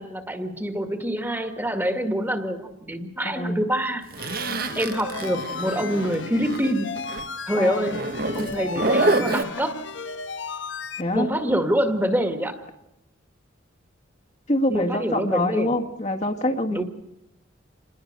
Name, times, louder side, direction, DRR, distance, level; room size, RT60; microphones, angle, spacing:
voice 1, 0.0-4.1 4.8-6.9 7.5-8.0 8.3-9.8 11.1-12.7 14.7-15.7 16.7-16.8, equal, 10° right, 7 dB, 2.0 m, -26 dB
voice 2, 3.2-3.6 7.6-7.8 11.0-11.3 14.5-16.8, left 1 dB, 35° left, 2 dB, 1.8 m, -25 dB
Zipper (clothing), 4.1-6.7 7.0-7.2 7.9-9.4, right 2 dB, 45° right, 1.5 m, -26 dB
sound 1, 4.2-11.0, left 5 dB, 65° left, 1.2 m, -35 dB
28.0 x 20.5 x 6.8 m, 0.84 s
head